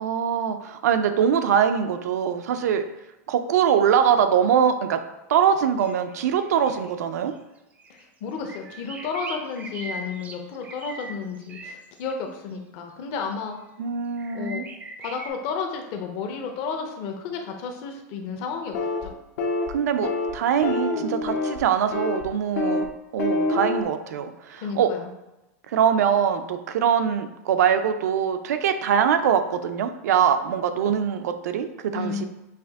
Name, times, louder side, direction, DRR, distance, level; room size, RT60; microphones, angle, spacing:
voice 1, 0.0-2.9 3.3-5.0 5.3-7.3 13.8-14.6 19.7-22.9 23.1-24.9 25.7-31.7 31.9-32.2, right 8 dB, 85° right, 9 dB, 0.5 m, -23 dB
sound 1, 5.8-6.9 7.3-7.4 7.8-8.0 8.3-12.1 13.3-13.4 14.2-15.3, right 2 dB, 15° right, 0.4 m, -40 dB
voice 2, 8.2-13.6 14.3-14.6 15.0-18.8 19.0-19.1 24.6-25.1 31.9-32.3, left 5 dB, 45° left, 3 dB, 0.7 m, -32 dB
sound 2, 18.7-19.1 19.4-19.7 20.0-20.3 20.6-21.6 21.9-22.2 22.6-22.9 23.2-23.8, left 2 dB, 75° left, 0.8 m, -26 dB
5.8 x 2.6 x 3.5 m, 0.97 s
supercardioid pair, 150°, 9 cm